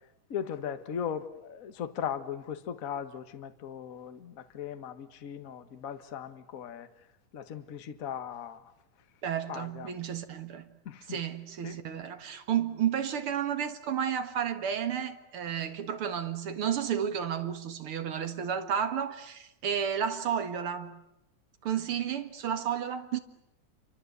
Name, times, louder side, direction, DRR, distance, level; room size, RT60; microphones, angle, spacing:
voice 1, 0.3-6.9 7.3-8.6 9.5-9.9 10.8-11.2 11.6-11.8, left 8 dB, 45° left, 1.1 m, -38 dB
voice 2, 9.2-10.7 11.1-21.0 21.6-23.2, right 8 dB, 50° right, 2.3 m, -32 dB
28.5 x 25.0 x 8.1 m
omnidirectional pair, 3.5 m